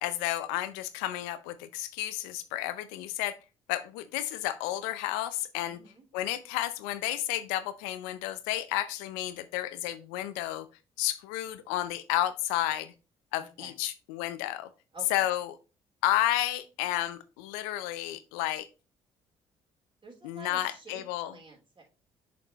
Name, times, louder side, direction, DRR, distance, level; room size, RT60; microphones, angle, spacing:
voice 1, 0.0-3.4 3.7-5.8 6.1-10.7 11.0-12.9 13.3-14.7 15.1-15.6 16.0-18.7 20.2-21.3, left 14 dB, 85° left, 12 dB, 0.5 m, -31 dB
voice 2, 5.7-6.0 13.4-13.7 14.9-15.3 20.0-21.8, right 4 dB, 35° right, -1 dB, 3.2 m, -49 dB
6.8 x 5.1 x 2.9 m, 0.31 s
hypercardioid pair, 50°, 14 cm